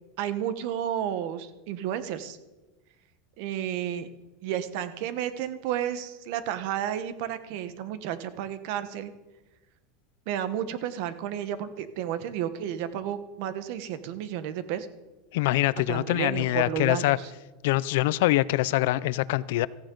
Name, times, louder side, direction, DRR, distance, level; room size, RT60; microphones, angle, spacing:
voice 1, 0.2-2.4 3.4-4.1 4.4-9.1 10.3-14.9 15.9-17.3, right 10 dB, 55° right, 12 dB, 1.1 m, -32 dB
voice 2, 15.3-17.2 17.6-19.7, left 17 dB, 70° left, 19 dB, 0.5 m, -24 dB
16.5 x 14.5 x 3.9 m, 1.1 s
supercardioid pair, 155°, 0 cm